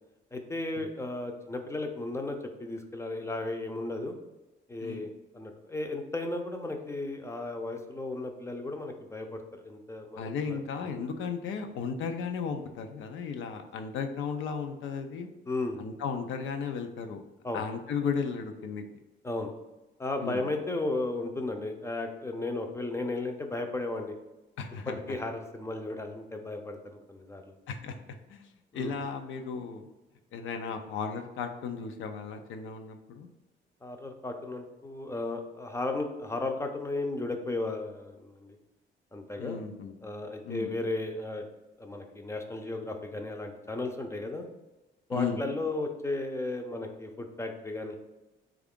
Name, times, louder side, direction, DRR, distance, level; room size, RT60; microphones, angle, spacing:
voice 1, 0.3-4.2 4.7-5.1 5.3-10.6 15.5-15.8 17.4-17.6 19.2-19.5 20.0-24.2 24.9-27.5 28.7-29.0 33.8-38.6 39.1-39.6 40.0-41.4 41.8-44.5 45.1-48.0, left 2 dB, 15° left, 4 dB, 0.5 m, -35 dB
voice 2, 10.2-15.3 15.8-17.2 17.5-18.8 20.2-20.4 24.6-25.0 27.7-27.9 28.3-28.5 28.7-29.9 30.3-33.3 39.4-39.9 40.4-40.7 45.1-45.4, left 6 dB, 80° left, 6 dB, 0.5 m, -35 dB
3.5 x 2.4 x 3.6 m, 1.0 s
cardioid pair, 90°, 20 cm